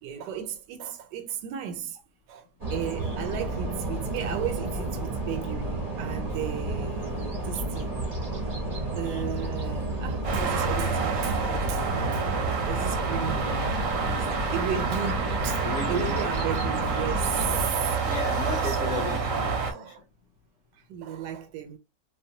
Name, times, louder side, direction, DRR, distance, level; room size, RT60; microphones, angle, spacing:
voice 1, 0.0-2.0 2.3-7.9 9.0-12.2 12.6-18.0 18.6-18.8 19.6-20.0 20.7-21.8, right 9 dB, 90° right, 1.2 m, -35 dB
sound 1, 2.6-17.7, right 2 dB, 45° right, 0.5 m, -31 dB
sound 2, 10.2-19.7, right 4 dB, 65° right, 0.8 m, -28 dB
voice 2, 15.6-16.1 17.7-19.9, left 4 dB, 70° left, 0.7 m, -35 dB
2.8 x 2.0 x 2.7 m
omnidirectional pair, 1.8 m